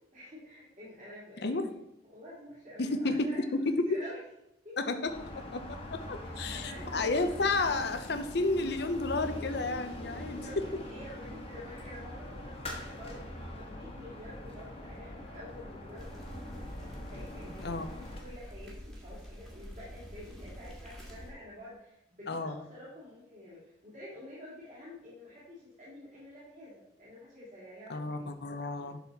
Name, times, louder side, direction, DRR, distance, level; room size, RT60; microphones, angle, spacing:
voice 1, 0.1-1.8 2.1-4.2 4.6-4.8 6.2-7.5 10.4-13.3 13.5-16.6 17.0-28.4 28.8-29.0, left 1 dB, 40° right, -10 dB, 2.7 m, -49 dB
voice 2, 2.8-3.9 4.8-5.1 5.5-10.4 17.6-17.9 22.3-22.6 27.9-29.0, left 2 dB, 55° left, 8 dB, 0.7 m, -31 dB
sound 1, 5.1-18.2, left 1 dB, 30° left, 1.4 m, -43 dB
sound 2, 15.9-21.3, equal, ahead, 1.7 m, -46 dB
11.0 x 4.2 x 4.1 m, 0.82 s
head